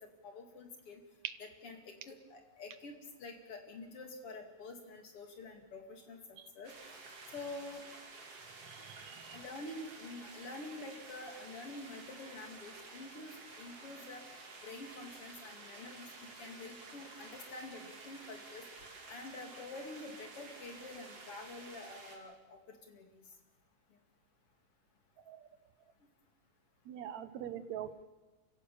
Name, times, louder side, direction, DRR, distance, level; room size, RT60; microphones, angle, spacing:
voice 1, 0.2-1.0 1.4-6.7 7.3-7.8 9.3-14.2 14.6-18.7 19.1-23.3, left 2 dB, 45° left, 4 dB, 3.1 m, -48 dB
sound 1, 6.6-22.2, right 3 dB, 45° right, 3.7 m, -52 dB
voice 2, 8.9-9.4 25.3-25.4 26.9-28.0, right 10 dB, 65° right, 12 dB, 2.1 m, -43 dB
28.5 x 16.0 x 7.0 m, 1.2 s
omnidirectional pair, 3.8 m